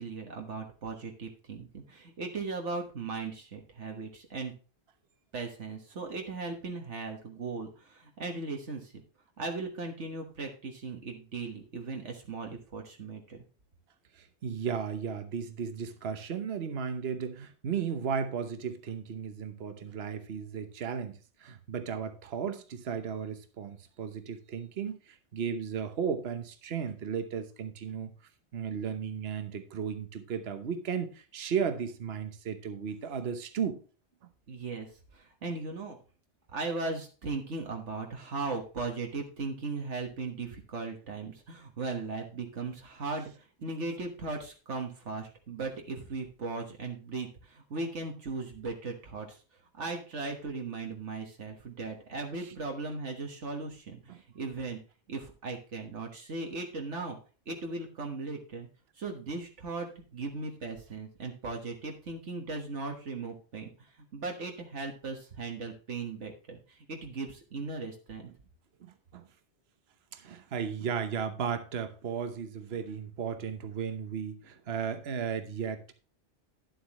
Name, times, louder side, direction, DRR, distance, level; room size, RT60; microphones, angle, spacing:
voice 1, 0.0-4.5 5.3-8.9 9.4-13.4 34.5-34.9 35.1-36.0 36.5-49.4 49.7-54.8 55.1-57.2 57.5-58.7 59.0-63.7 64.1-68.2, right 3 dB, 75° right, 3 dB, 1.7 m, -38 dB
voice 2, 14.1-28.1 28.5-33.8 52.4-52.6 54.1-54.2 68.8-69.3 70.1-75.9, right 7 dB, 60° right, 9 dB, 1.2 m, -35 dB
11.0 x 7.8 x 3.0 m, 0.36 s
omnidirectional pair, 1.2 m